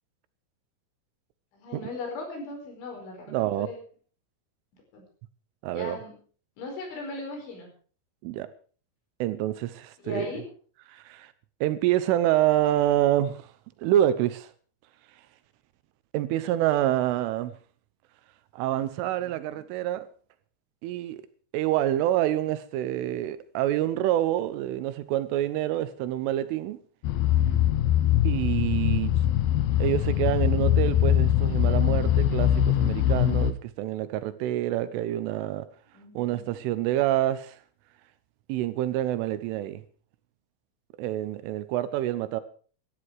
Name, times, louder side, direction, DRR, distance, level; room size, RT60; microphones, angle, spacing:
voice 1, 1.5-3.8 4.9-5.0 5.7-6.2 6.6-7.7 10.0-10.4 35.9-36.6, left 3 dB, 65° left, 7.1 m, -38 dB
voice 2, 3.3-3.7 5.6-6.0 8.2-8.5 9.2-10.3 10.9-11.3 11.6-13.5 13.8-14.5 16.1-17.5 18.5-20.1 20.8-21.2 21.5-26.8 28.2-29.2 29.8-35.7 36.1-37.6 38.5-39.8 41.0-42.4, right 13 dB, 80° right, 3.3 m, -27 dB
sound 1, 27.0-33.5, left 11 dB, 90° left, 2.1 m, -22 dB
18.0 x 13.0 x 4.8 m
omnidirectional pair, 5.8 m